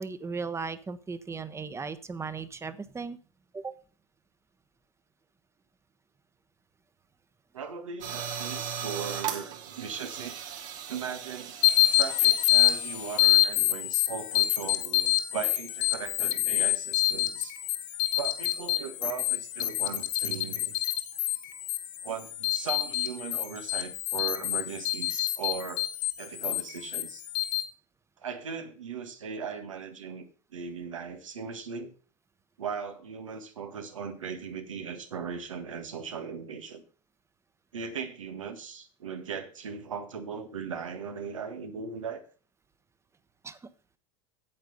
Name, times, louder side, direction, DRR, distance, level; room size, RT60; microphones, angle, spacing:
voice 1, 0.0-3.2 3.5-3.7 43.4-43.7, right 4 dB, 15° right, 1.0 m, -37 dB
voice 2, 7.5-10.3 10.9-11.5 11.9-17.5 18.1-20.8 22.0-25.9 26.2-27.2 28.2-30.3 30.5-31.9 32.6-36.8 37.7-42.2, right 6 dB, 90° right, 1.8 m, -38 dB
sound 1, 8.0-13.5, right 8 dB, 55° right, 2.5 m, -38 dB
sound 2, 11.6-27.6, left 15 dB, 65° left, 2.1 m, -27 dB
8.7 x 8.2 x 5.5 m
hypercardioid pair, 95°, 16 cm